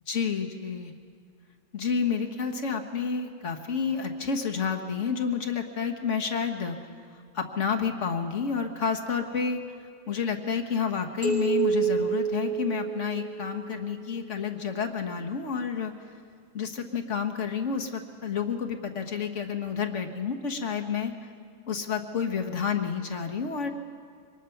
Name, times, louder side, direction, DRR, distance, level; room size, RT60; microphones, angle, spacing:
voice 1, 0.1-0.9 1.7-6.8 7.3-9.6 10.1-15.9 16.5-21.1 21.7-23.7, left 6 dB, 80° left, 4 dB, 1.6 m, -30 dB
sound 1, 11.2-13.6, right 6 dB, 60° right, 6.7 m, -28 dB
24.0 x 19.0 x 5.8 m, 2.1 s
omnidirectional pair, 1.2 m